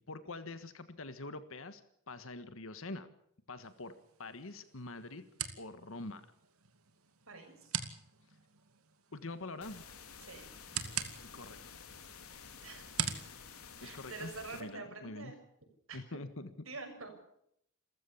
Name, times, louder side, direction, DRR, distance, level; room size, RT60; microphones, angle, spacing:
voice 1, 0.1-3.1 3.5-5.2 5.6-6.3 9.1-9.8 11.2-11.8 13.8-15.3 15.9-16.5, left 2 dB, 65° left, 11 dB, 1.5 m, -45 dB
sound 1, 3.6-14.6, right 8 dB, 85° right, 2.4 m, -44 dB
voice 2, 7.3-7.7 10.2-10.5 12.6-12.9 13.8-15.4 15.9-16.0 16.7-17.1, right 3 dB, 65° right, 5 dB, 6.4 m, -46 dB
sound 2, 9.6-14.6, left 6 dB, 85° left, 3.1 m, -51 dB
28.5 x 15.0 x 7.2 m, 0.73 s
head